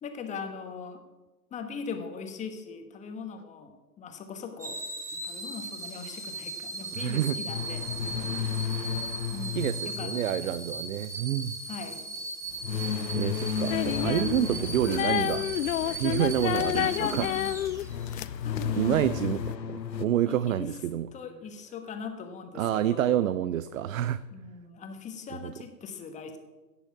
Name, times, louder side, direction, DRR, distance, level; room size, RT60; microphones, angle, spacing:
voice 1, 0.0-1.0 1.5-4.8 5.1-7.8 9.3-10.5 11.7-12.0 16.7-17.3 18.0-19.2 20.3-20.7 21.1-23.3 24.3-26.4, left 5 dB, 15° left, 6 dB, 1.3 m, -40 dB
sound 1, 4.6-18.2 18.7-18.9, right 2 dB, 5° right, 1.4 m, -38 dB
voice 2, 6.9-7.4 9.5-11.6 13.1-17.3 18.8-21.1 22.5-24.2 25.4-25.5, right 11 dB, 55° right, 15 dB, 0.6 m, -28 dB
sound 2, 7.5-11.0 12.6-15.7 17.8-20.1, left 7 dB, 80° left, 0.9 m, -33 dB
sound 3, 13.7-19.5, left 12 dB, 55° left, 0.5 m, -30 dB
17.0 x 7.0 x 5.9 m, 1.2 s
hypercardioid pair, 125°, 50 cm